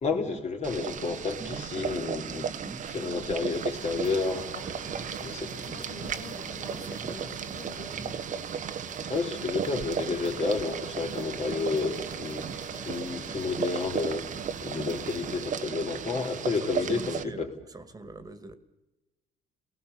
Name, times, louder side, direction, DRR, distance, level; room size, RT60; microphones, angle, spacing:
voice 1, 0.0-2.5 2.9-4.5 5.2-5.5 9.1-12.5 12.7-17.5, left 4 dB, 40° left, 4 dB, 3.7 m, -31 dB
Boiling, 0.6-17.2, right 8 dB, 50° right, 1.1 m, -35 dB
voice 2, 1.4-2.1 2.6-3.3 4.6-8.2 16.6-18.5, right 2 dB, 20° right, 10 dB, 2.1 m, -45 dB
sound 1, 3.5-15.5, left 4 dB, 75° left, 3.8 m, -47 dB
29.0 x 19.0 x 7.0 m, 1.1 s
cardioid pair, 110°, 17 cm